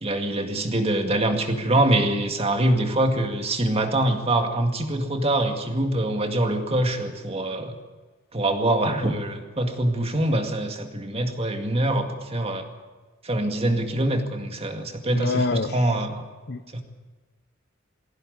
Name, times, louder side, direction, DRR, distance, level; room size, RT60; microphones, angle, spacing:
voice 1, 0.0-7.8 8.3-12.7 13.2-16.2 16.7-16.8, right 1 dB, 30° right, 5 dB, 2.2 m, -24 dB
voice 2, 15.1-15.7 16.5-16.6, left 3 dB, 55° left, 10 dB, 0.9 m, -25 dB
20.5 x 16.0 x 9.7 m, 1.3 s
head